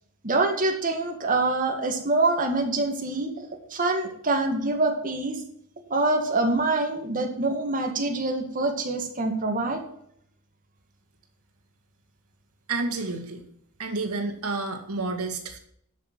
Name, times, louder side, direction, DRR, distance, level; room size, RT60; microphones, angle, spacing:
voice 1, 0.2-5.4 5.9-9.8, right 2 dB, 40° right, 4 dB, 1.9 m, -25 dB
voice 2, 12.7-13.4 13.8-15.6, right 3 dB, 85° right, 5 dB, 2.2 m, -30 dB
11.5 x 6.5 x 6.1 m, 0.69 s
head